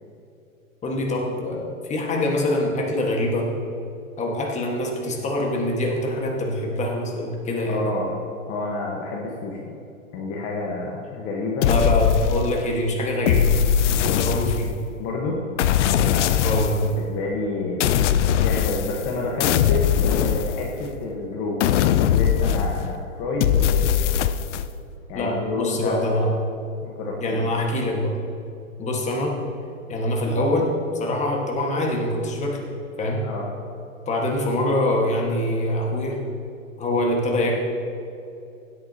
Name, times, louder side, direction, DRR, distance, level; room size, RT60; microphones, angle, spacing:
voice 1, 0.8-3.5 4.2-7.8 11.6-13.5 14.1-14.7 16.4-16.9 25.1-26.3 27.2-28.1 28.8-29.4 29.9-32.6 33.0-33.2 34.1-36.2 36.8-37.5, left 1 dB, 15° left, -1 dB, 1.6 m, -24 dB
voice 2, 7.7-8.1 8.5-9.7 10.1-11.7 15.0-15.4 16.0-17.8 18.4-21.6 22.1-24.1 25.1-26.2 26.8-27.4 33.2-33.5, left 3 dB, 35° left, -2 dB, 1.3 m, -29 dB
sound 1, 11.6-12.7 13.2-14.9 15.6-16.9 17.8-19.1 19.4-21.0 21.6-23.0 23.4-24.7, left 9 dB, 60° left, 0.6 m, -21 dB
16.5 x 8.2 x 2.9 m, 2.7 s
hypercardioid pair, 125°, 41 cm